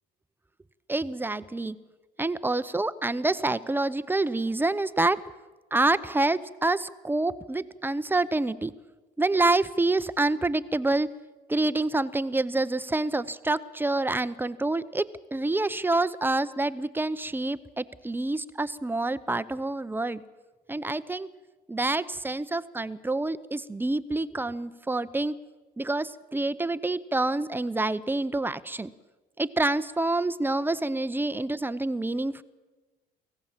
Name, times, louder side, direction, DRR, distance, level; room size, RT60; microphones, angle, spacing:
voice 1, 0.9-1.8 2.2-5.2 5.7-8.7 9.2-11.1 11.5-15.1 15.3-20.2 20.7-21.3 21.7-25.4 25.8-28.9 29.4-32.4, right 2 dB, 10° right, 13 dB, 0.7 m, -27 dB
24.0 x 16.5 x 7.4 m, 1.2 s
cardioid pair, 110°, 17 cm